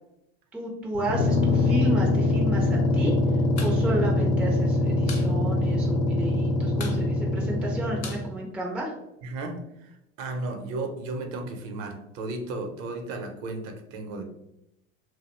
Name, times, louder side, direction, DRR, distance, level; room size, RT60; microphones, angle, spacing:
voice 1, 0.5-3.1 3.6-8.9, right 1 dB, 5° right, -1 dB, 0.3 m, -31 dB
sound 1, 0.9-8.3, left 2 dB, 85° left, 0.7 m, -23 dB
sound 2, 3.6-3.8 4.1-4.2 4.5-5.3 5.6-5.7 6.0-6.4 6.7-9.1, left 5 dB, 40° left, 0.6 m, -41 dB
voice 2, 9.2-14.2, right 2 dB, 65° right, 4 dB, 0.7 m, -34 dB
2.3 x 2.1 x 3.0 m, 0.85 s
hypercardioid pair, 100°, 41 cm